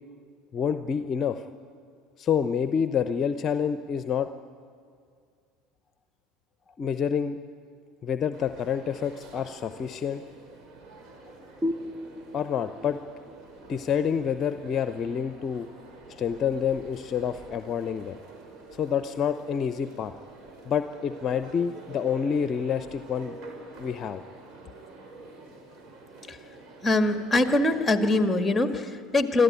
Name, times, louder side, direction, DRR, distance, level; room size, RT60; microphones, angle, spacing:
voice 1, 0.5-1.4 2.2-4.3 6.8-7.4 8.0-10.2 12.3-13.1 13.7-15.7 16.1-18.2 18.7-20.1 20.7-23.4 23.8-24.2, left 7 dB, 40° left, 11 dB, 0.7 m, -28 dB
sound 1, 8.3-28.2, right 2 dB, 50° right, 4.5 m, -47 dB
sound 2, 11.6-15.0, left 1 dB, 15° right, 0.9 m, -36 dB
voice 2, 26.8-29.4, left 2 dB, 15° left, 8 dB, 1.8 m, -23 dB
25.0 x 14.0 x 9.6 m, 2.2 s
hypercardioid pair, 75°, 0 cm